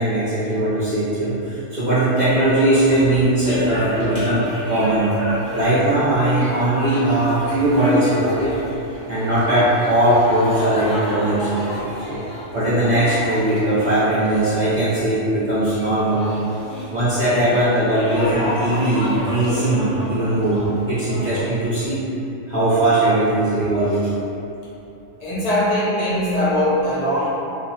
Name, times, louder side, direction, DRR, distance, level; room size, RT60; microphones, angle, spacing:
voice 1, 0.0-5.1 5.5-8.5 9.1-11.7 12.1-12.2 12.5-16.3 16.9-20.6 20.9-22.0 22.5-24.1, right 1 dB, 50° right, -13 dB, 0.5 m, -19 dB
Nepalese voices, 2.2-21.4, equal, 10° left, 0.5 m, -31 dB
voice 2, 25.2-27.4, left 1 dB, 65° left, -10 dB, 0.3 m, -21 dB
2.3 x 2.0 x 2.6 m, 2.8 s
omnidirectional pair, 1.3 m